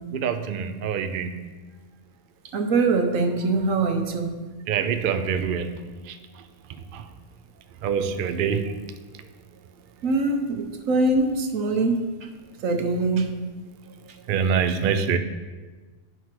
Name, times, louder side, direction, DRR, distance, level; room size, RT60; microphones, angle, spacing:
voice 1, 0.1-1.3 4.7-5.7 7.8-8.7 14.3-15.2, right 7 dB, 65° right, 9 dB, 0.5 m, -24 dB
voice 2, 2.5-4.3 4.8-4.9 10.0-12.1 12.6-13.4, right 3 dB, 85° right, 4 dB, 1.2 m, -23 dB
9.2 x 3.2 x 5.8 m, 1.3 s
omnidirectional pair, 1.3 m